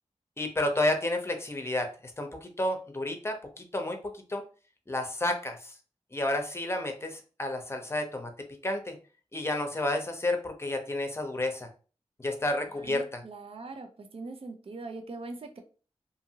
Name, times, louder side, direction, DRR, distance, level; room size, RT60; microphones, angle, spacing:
voice 1, 0.4-1.9 2.2-4.4 4.9-5.7 6.1-8.3 8.6-9.0 9.3-11.7 12.2-13.2, left 1 dB, 20° left, 0.7 m, -31 dB
voice 2, 12.7-15.6, right 3 dB, 55° right, 0.4 m, -42 dB
2.6 x 2.6 x 2.7 m
wide cardioid pair, 60°, 12 cm